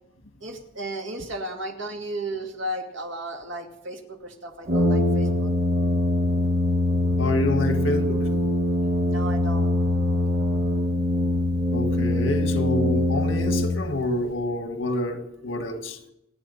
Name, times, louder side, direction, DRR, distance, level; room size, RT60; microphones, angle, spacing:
voice 1, 0.4-5.5 9.0-9.7, right 1 dB, 70° right, 2.5 m, -34 dB
Brass instrument, 4.7-14.2, left 1 dB, 50° right, 2.7 m, -23 dB
voice 2, 7.2-8.2 11.7-16.0, left 2 dB, 80° left, 1.7 m, -28 dB
28.0 x 9.6 x 4.2 m
head